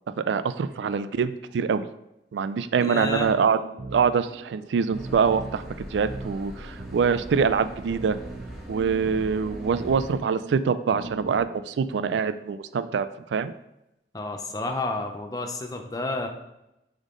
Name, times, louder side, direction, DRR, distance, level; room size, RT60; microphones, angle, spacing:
voice 1, 0.2-1.9 2.3-3.6 3.9-5.6 5.9-8.2 8.7-13.5, right 6 dB, 85° right, 13 dB, 0.3 m, -24 dB
voice 2, 2.8-3.4 14.1-16.3, left 2 dB, 20° left, 4 dB, 0.6 m, -30 dB
sound 1, 2.9-11.4, right 2 dB, 35° right, 0.6 m, -41 dB
sound 2, 4.9-10.1, equal, ahead, 1.7 m, -41 dB
7.1 x 3.7 x 3.8 m, 0.88 s
head